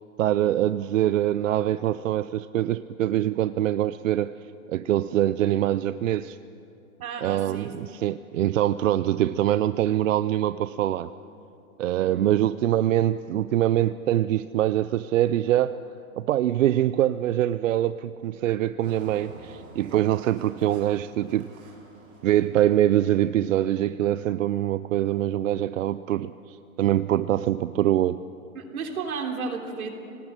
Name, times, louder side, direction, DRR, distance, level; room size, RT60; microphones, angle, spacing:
voice 1, 0.2-4.3 4.7-6.4 7.2-11.1 11.8-15.8 16.2-21.5 22.2-28.2, right 12 dB, 65° right, 14 dB, 0.5 m, -24 dB
voice 2, 7.0-7.8 8.4-8.6 12.0-12.3 28.5-29.9, right 5 dB, 90° right, 3 dB, 3.5 m, -33 dB
Engine, 18.8-23.3, right 3 dB, 20° right, 2.9 m, -48 dB
25.5 x 18.5 x 6.6 m, 2.7 s
hypercardioid pair, 175°, 42 cm